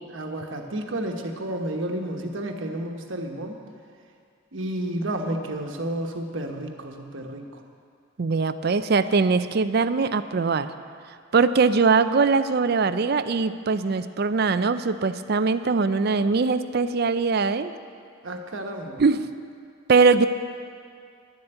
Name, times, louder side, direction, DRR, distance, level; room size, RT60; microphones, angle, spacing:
voice 1, 0.0-3.6 4.5-7.6 18.2-19.0, right 1 dB, 65° right, 3 dB, 1.2 m, -31 dB
voice 2, 8.2-10.7 11.3-17.7 19.0-19.2 19.9-20.3, right 4 dB, 50° right, 12 dB, 0.4 m, -21 dB
11.0 x 7.9 x 8.9 m, 2.3 s
head